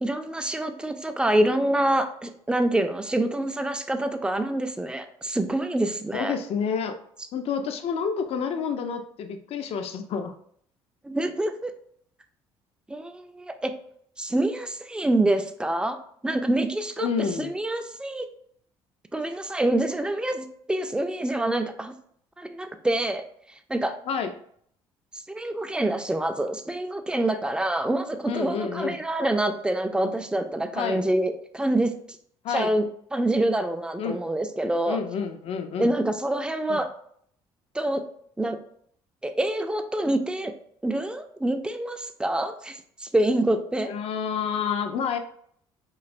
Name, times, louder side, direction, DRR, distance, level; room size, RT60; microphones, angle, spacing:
voice 1, 0.0-6.3 11.0-11.7 12.9-13.7 14.2-17.1 17.4-18.3 19.1-21.9 22.4-23.2 23.7-24.0 25.3-31.9 32.5-32.8 33.1-35.0 35.8-36.9 37.7-38.0 38.4-38.6 39.2-40.5 40.8-43.9, right 1 dB, 5° right, 7 dB, 0.4 m, -26 dB
voice 2, 6.1-6.9 7.3-10.3 17.0-17.5 24.1-24.3 28.3-29.0 30.7-31.0 32.4-32.7 34.0-34.2 34.9-35.9 36.7-36.8 43.9-45.2, left 6 dB, 55° left, 7 dB, 0.4 m, -29 dB
3.1 x 2.6 x 2.4 m, 0.64 s
hypercardioid pair, 65°, 12 cm